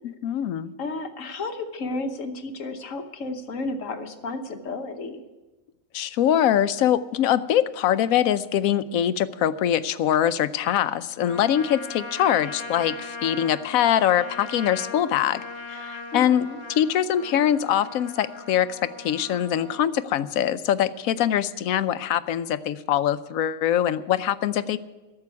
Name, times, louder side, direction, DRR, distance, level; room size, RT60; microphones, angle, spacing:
voice 1, 0.0-0.7 5.9-15.4 15.7-24.8, left 10 dB, 85° left, 14 dB, 1.1 m, -23 dB
voice 2, 0.8-5.3 16.1-16.6, left 2 dB, 70° left, 7 dB, 1.4 m, -32 dB
Trumpet, 11.2-19.9, left 3 dB, 50° left, 1.5 m, -39 dB
12.5 x 7.6 x 9.6 m, 1.1 s
omnidirectional pair, 1.4 m